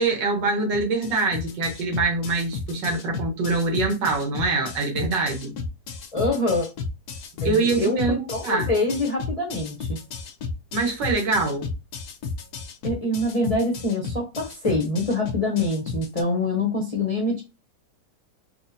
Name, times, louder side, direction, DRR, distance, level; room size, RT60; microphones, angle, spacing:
voice 1, 0.0-5.5 7.5-8.7 10.7-11.7, right 3 dB, 90° right, 1.8 m, -24 dB
sound 1, 0.7-16.2, left 5 dB, 65° left, 1.0 m, -33 dB
voice 2, 6.1-6.7 7.4-8.0 8.3-10.0 12.8-17.4, left 2 dB, 40° left, 0.5 m, -25 dB
4.4 x 2.4 x 2.7 m
omnidirectional pair, 1.8 m